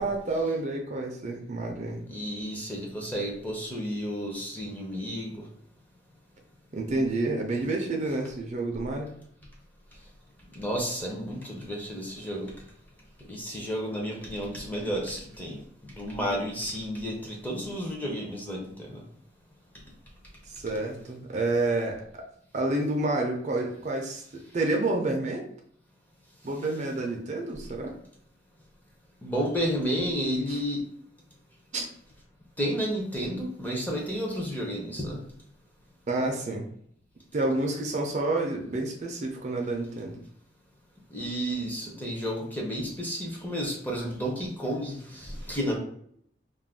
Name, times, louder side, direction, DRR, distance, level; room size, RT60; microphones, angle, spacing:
voice 1, 0.0-2.0 6.7-9.1 20.5-22.3 22.5-25.5 26.4-27.9 31.7-31.9 36.1-36.7 37.3-40.2, right 2 dB, 40° right, 1 dB, 0.4 m, -29 dB
voice 2, 2.1-5.4 10.5-12.5 13.3-19.0 29.2-30.8 32.6-35.2 41.1-45.8, equal, 10° left, -1 dB, 0.6 m, -32 dB
2.4 x 2.2 x 3.4 m, 0.67 s
head